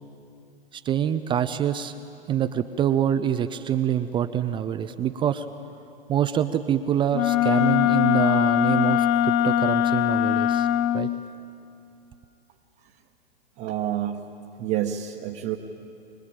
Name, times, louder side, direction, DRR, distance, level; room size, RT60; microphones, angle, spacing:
voice 1, 0.7-1.9 2.3-5.5 6.1-10.7 10.9-11.1, right 9 dB, 15° right, 10 dB, 0.5 m, -25 dB
Wind instrument woodwind instrument, 7.1-11.2, left 11 dB, 30° left, 0.7 m, -21 dB
voice 2, 13.6-14.2 14.6-15.6, right 11 dB, 35° right, 0 dB, 1.3 m, -28 dB
24.5 x 19.5 x 8.9 m, 2.6 s
hypercardioid pair, 115°, 30 cm